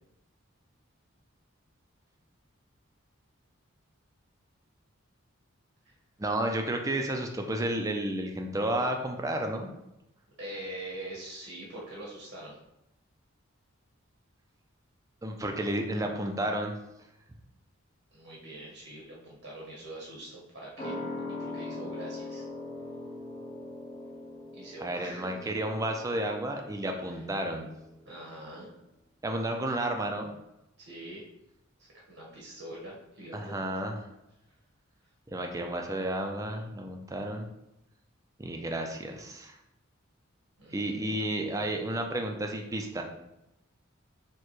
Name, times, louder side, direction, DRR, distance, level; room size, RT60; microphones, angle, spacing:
voice 1, 6.2-9.7 15.2-16.7 24.8-27.7 29.2-30.3 33.3-34.0 35.3-37.5 38.4-39.6 40.7-43.0, right 1 dB, 15° right, 3 dB, 0.4 m, -32 dB
voice 2, 10.4-12.6 18.1-21.0 21.3-22.5 24.5-25.5 27.1-27.2 28.0-28.7 30.8-31.3 31.8-33.7 40.6-41.1, right 1 dB, 70° right, -4 dB, 1.0 m, -44 dB
sound 1, 20.8-27.8 28.1-28.2, left 2 dB, 25° left, 0.9 m, -41 dB
6.5 x 2.2 x 3.0 m, 0.90 s
head